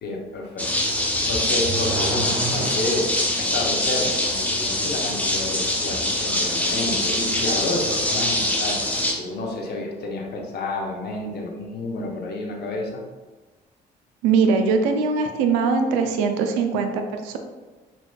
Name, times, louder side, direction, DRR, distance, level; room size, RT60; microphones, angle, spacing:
voice 1, 0.0-0.6 1.0-3.1 3.4-8.8 9.1-12.9, left 2 dB, 50° left, 0 dB, 1.0 m, -30 dB
sound 1, 0.6-9.1, left 1 dB, 5° left, 0.8 m, -24 dB
Car / Accelerating revving vroom, 1.1-3.3, right 4 dB, 50° right, 0.9 m, -31 dB
voice 2, 14.2-17.4, right 5 dB, 65° right, 6 dB, 0.5 m, -21 dB
6.3 x 2.9 x 2.3 m, 1.3 s
figure-of-eight pair, 45°, 21 cm